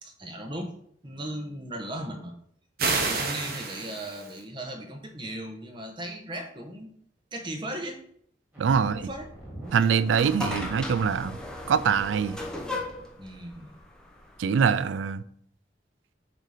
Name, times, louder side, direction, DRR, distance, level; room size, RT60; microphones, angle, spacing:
voice 1, 0.0-0.7 1.0-2.3 2.8-6.9 7.3-8.0 8.7-9.3 13.2-13.8, right 1 dB, 25° right, 0.9 m, -37 dB
sound 1, 2.8-4.4, right 4 dB, 55° right, 0.9 m, -29 dB
sound 2, 8.5-13.4, right 1 dB, 10° right, 2.2 m, -43 dB
voice 2, 8.6-9.0 9.7-11.4 11.7-12.4 14.4-15.2, right 6 dB, 85° right, 0.4 m, -24 dB
sound 3, 9.7-14.9, left 2 dB, 5° left, 0.8 m, -37 dB
7.5 x 2.8 x 4.9 m
head